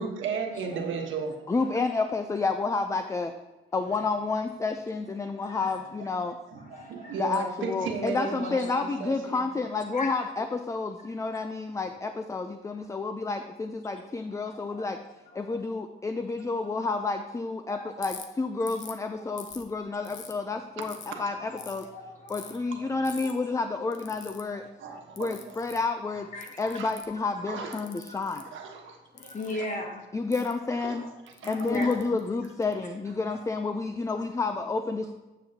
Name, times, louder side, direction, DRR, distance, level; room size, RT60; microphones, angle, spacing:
voice 1, 0.0-1.4 6.3-9.4 20.8-21.2 24.8-25.6 26.7-26.9 27.5-27.9 28.4-29.0 29.5-29.7 30.8-31.1 31.4-32.0 33.3-33.4, right 5 dB, 75° right, 2 dB, 1.3 m, -35 dB
voice 2, 0.5-0.8 3.9-4.0 5.2-5.8 6.6-7.3 8.2-8.7 9.9-10.3 11.3-11.4 12.8-12.9 14.3-14.4 14.7-15.6 16.6-16.7 17.7-18.2 18.5-18.6 19.2-19.4 21.1-21.2 21.5-22.9 23.2-23.5 24.5-25.0 26.3-26.8 27.1-27.2 28.0-28.3 29.1-30.1 31.4-32.0, left 2 dB, 40° left, 1 dB, 1.8 m, -40 dB
voice 3, 1.5-3.3 3.7-6.4 7.2-15.0 15.3-21.9 22.3-24.6 25.2-26.3 26.6-28.5 30.1-31.0 31.5-35.1, left 3 dB, 15° left, 8 dB, 0.4 m, -30 dB
Ratchet pawl, 18.0-18.2 18.7-19.0 19.4-20.3 20.8-21.1 21.6-21.8 22.3-22.6 23.0-23.3 23.9-24.4 25.2-25.8 26.4-27.2 27.7-28.4 29.2-29.5 30.3-30.5 31.3-32.7, left 8 dB, 70° left, 0.8 m, -44 dB
8.8 x 7.1 x 2.8 m, 1.1 s
cardioid pair, 90°, 20 cm